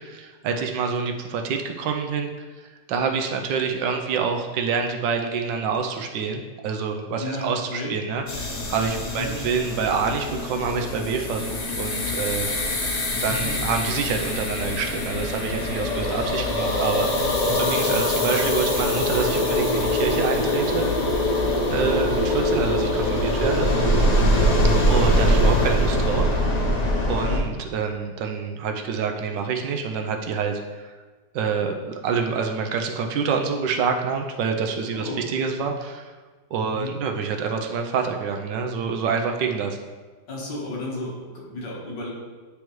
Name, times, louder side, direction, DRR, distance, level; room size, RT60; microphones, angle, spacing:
voice 1, 0.0-12.5 13.2-20.9 21.7-23.7 24.9-26.3 27.1-30.9 31.3-36.1 36.5-39.8, right 5 dB, 80° right, 3 dB, 1.3 m, -27 dB
voice 2, 7.2-7.9 9.0-9.4 12.6-12.9 13.2-13.7 17.5-17.8 23.6-23.9 27.1-27.5 34.9-35.2 36.6-36.9 40.3-42.1, left 2 dB, 70° left, -3 dB, 1.9 m, -33 dB
sound 1, 8.3-27.4, left 1 dB, 90° left, 0.3 m, -23 dB
9.7 x 3.3 x 3.1 m, 1.3 s
omnidirectional pair, 2.0 m